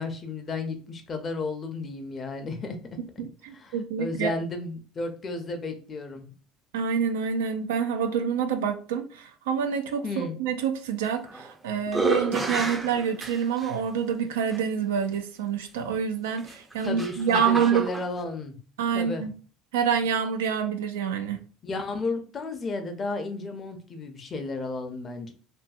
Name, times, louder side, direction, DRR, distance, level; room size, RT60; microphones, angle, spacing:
voice 1, 0.0-2.8 3.6-6.3 10.0-10.4 16.8-18.6 18.9-19.3 21.6-25.3, left 3 dB, 35° left, 6 dB, 0.6 m, -33 dB
voice 2, 3.2-4.3 6.7-17.9 18.8-19.3 19.7-21.4, right 7 dB, 90° right, 7 dB, 0.4 m, -27 dB
sound 1, 11.0-11.5 11.9-13.7 14.5-14.6 16.4-18.1, right 2 dB, 20° right, 0.4 m, -30 dB
2.6 x 2.6 x 2.4 m, 0.39 s
supercardioid pair, 80°, 0 cm